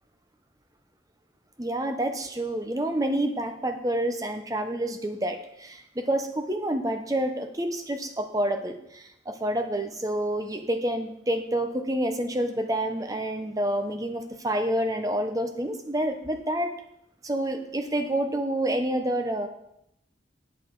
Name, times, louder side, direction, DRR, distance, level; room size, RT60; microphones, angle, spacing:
voice 1, 1.6-16.7 17.2-19.5, right 1 dB, 20° right, 6 dB, 0.8 m, -28 dB
8.8 x 7.1 x 4.6 m, 0.79 s
head